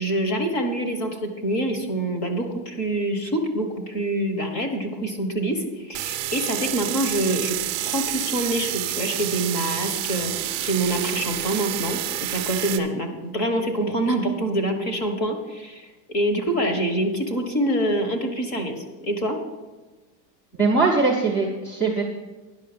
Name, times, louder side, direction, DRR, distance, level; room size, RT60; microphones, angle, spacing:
voice 1, 0.0-7.6 7.8-19.4, right 1 dB, 35° left, 6 dB, 1.4 m, -26 dB
sound 1, 5.9-12.8, right 14 dB, 35° right, 0.6 m, -29 dB
voice 2, 20.6-22.0, right 4 dB, 5° left, -2 dB, 0.7 m, -21 dB
10.0 x 6.4 x 6.8 m, 1.2 s
supercardioid pair, 175°, 49 cm